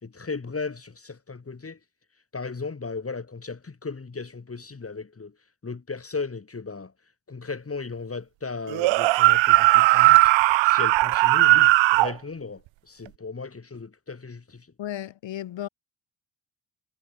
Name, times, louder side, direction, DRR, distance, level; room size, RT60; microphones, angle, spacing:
voice 1, 0.0-1.8 2.3-5.3 5.6-6.9 7.3-12.6 12.9-14.7, left 4 dB, 30° left, 5.1 m, -36 dB
sound 1, 8.7-12.1, right 19 dB, 75° right, 0.9 m, -18 dB
voice 2, 14.8-15.7, left 12 dB, 70° left, 7.6 m, -34 dB
supercardioid pair, 60°, 45 cm